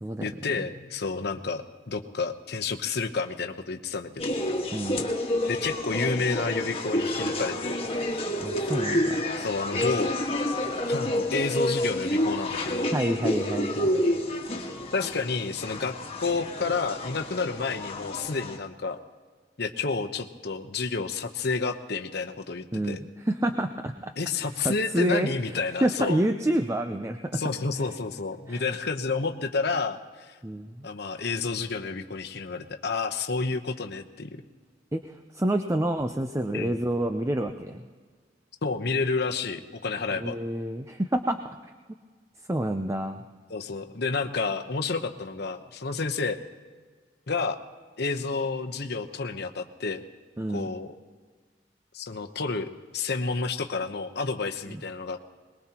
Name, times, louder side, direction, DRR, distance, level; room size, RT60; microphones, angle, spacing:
voice 1, 0.2-4.3 5.5-7.8 9.4-10.2 10.9-12.9 14.9-19.0 19.6-23.0 24.2-26.2 27.3-30.4 30.8-34.3 36.5-36.8 38.6-40.4 43.5-46.4 47.3-47.6 48.0-50.0 50.5-50.9 51.9-55.2, left 4 dB, 60° left, 6 dB, 1.0 m, -30 dB
sound 1, 4.2-18.6, left 1 dB, 30° left, 1.6 m, -29 dB
voice 2, 4.7-5.0 8.4-9.2 12.9-14.0 22.7-23.0 23.3-27.3 28.5-28.6 30.4-30.9 34.9-37.8 40.2-41.4 41.6-41.7 42.5-43.2 50.4-50.7 54.7-54.8, right 1 dB, 15° right, 6 dB, 0.5 m, -28 dB
22.0 x 20.5 x 3.0 m, 1.5 s
head